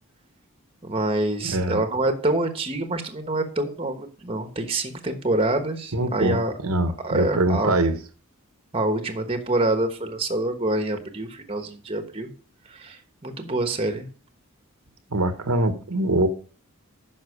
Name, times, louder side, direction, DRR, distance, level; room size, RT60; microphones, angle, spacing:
voice 1, 0.8-6.5 7.0-7.8 8.7-12.3 12.7-14.1, right 2 dB, 25° right, 1.1 m, -26 dB
voice 2, 1.4-1.8 5.9-6.4 6.6-8.0 15.1-16.3, right 1 dB, 85° right, 1.2 m, -23 dB
9.7 x 6.0 x 4.9 m
head